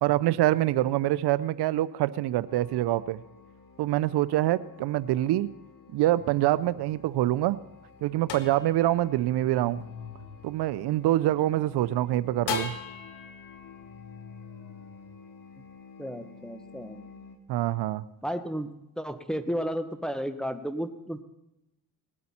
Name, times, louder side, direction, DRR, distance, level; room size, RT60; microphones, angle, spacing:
voice 1, 0.0-3.2 3.8-5.5 5.9-7.6 8.0-9.8 10.4-12.7 17.5-18.0, right 14 dB, 80° right, 16 dB, 0.6 m, -25 dB
sound 1, 2.4-17.4, left 5 dB, 55° left, 2.0 m, -51 dB
sound 2, 6.2-11.5 12.5-15.8, left 6 dB, 90° left, 1.2 m, -41 dB
voice 2, 16.0-17.1 18.2-18.7 19.0-21.2, equal, ahead, 7 dB, 1.0 m, -33 dB
20.0 x 8.5 x 4.3 m, 0.90 s
cardioid pair, 75°, 39 cm